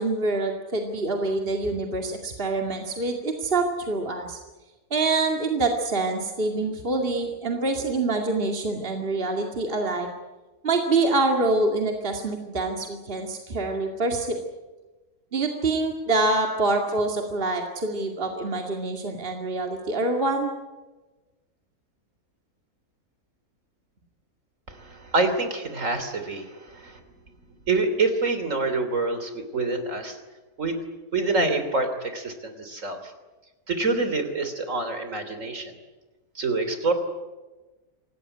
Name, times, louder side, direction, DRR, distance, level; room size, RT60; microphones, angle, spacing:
voice 1, 0.0-4.4 4.9-10.1 10.6-14.4 15.3-20.5, right 2 dB, 40° right, 2 dB, 2.4 m, -26 dB
voice 2, 24.7-27.0 27.7-30.2 30.6-30.8 31.1-33.1 33.7-35.7 36.3-36.9, right 3 dB, 55° right, 8 dB, 3.5 m, -26 dB
26.0 x 18.5 x 9.8 m, 1.2 s
omnidirectional pair, 1.6 m